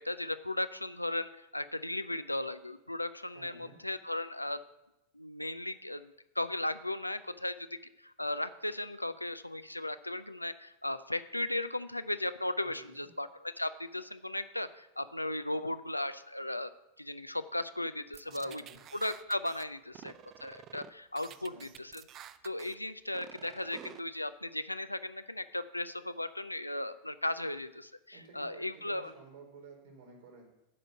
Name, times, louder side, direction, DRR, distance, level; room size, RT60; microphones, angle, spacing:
voice 1, 0.0-4.6 5.1-16.7 17.0-18.6 18.9-20.1 20.4-22.0 22.4-29.1, left 1 dB, 85° left, 12 dB, 0.4 m, -36 dB
voice 2, 3.3-3.8 12.6-13.1 18.3-18.8 21.3-21.7 28.1-30.5, right 4 dB, 60° right, 1 dB, 3.8 m, -54 dB
sound 1, 18.1-19.6 19.9-20.9 21.2-22.7 23.1-24.0, right 10 dB, 35° right, 0.5 m, -50 dB
11.0 x 5.1 x 7.9 m, 0.92 s
figure-of-eight pair, 90°, 0 cm